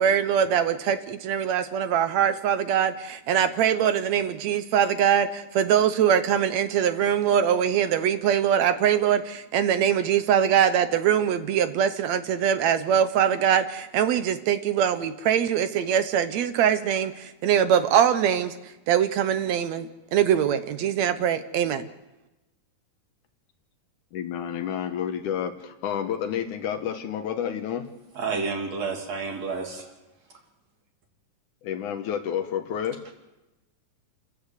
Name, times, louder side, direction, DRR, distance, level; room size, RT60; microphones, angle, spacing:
voice 1, 0.0-18.5 18.9-21.9, right 9 dB, 70° right, 11 dB, 1.8 m, -23 dB
voice 2, 24.1-27.9 31.6-33.0, left 9 dB, 75° left, 7 dB, 2.5 m, -30 dB
voice 3, 28.2-29.9, right 4 dB, 55° right, 2 dB, 4.0 m, -30 dB
29.0 x 13.5 x 8.2 m, 1.1 s
omnidirectional pair, 3.8 m